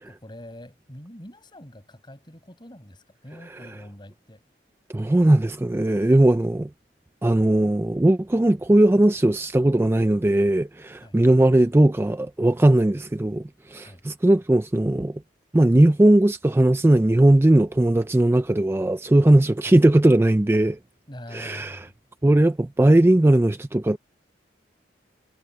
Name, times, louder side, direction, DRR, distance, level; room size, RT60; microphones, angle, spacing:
voice 1, 0.0-4.4 11.0-11.2 13.8-14.0 19.7-19.8 21.1-21.9, left 1 dB, 25° left, 5.9 m, -44 dB
voice 2, 4.9-6.7 7.2-15.2 15.5-20.8 21.3-21.8 22.2-24.0, right 1 dB, 15° right, 0.4 m, -18 dB
head